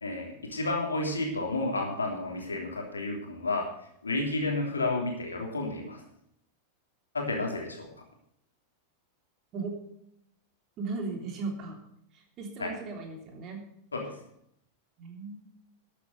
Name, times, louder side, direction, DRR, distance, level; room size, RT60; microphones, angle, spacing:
voice 1, 0.0-3.7 4.0-6.0 7.1-7.9 12.6-12.7 13.9-14.1, left 2 dB, 75° left, 1 dB, 3.1 m, -31 dB
voice 2, 10.8-11.8 12.1-13.6 15.0-15.4, right 4 dB, 35° right, 2 dB, 3.2 m, -37 dB
12.5 x 8.3 x 6.7 m, 0.73 s
figure-of-eight pair, 90°, 0 cm